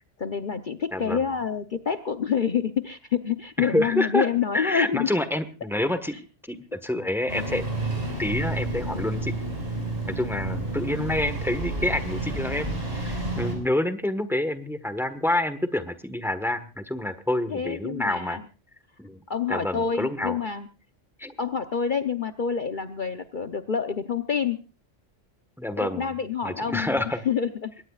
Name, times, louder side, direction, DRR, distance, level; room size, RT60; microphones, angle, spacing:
voice 1, 0.2-5.1 17.5-18.4 19.3-20.7 21.4-24.6 25.8-27.7, left 7 dB, 45° left, 8 dB, 0.9 m, -27 dB
voice 2, 0.9-1.3 3.6-4.3 4.5-7.6 8.2-9.4 10.1-18.4 19.0-19.2 19.5-20.4 21.2-21.4 25.6-26.1 26.4-27.2, left 1 dB, ahead, 11 dB, 1.3 m, -28 dB
Engine starting, 7.3-13.6, right 2 dB, 55° right, 6.0 m, -30 dB
22.5 x 19.0 x 2.4 m, 0.34 s
omnidirectional pair, 1.2 m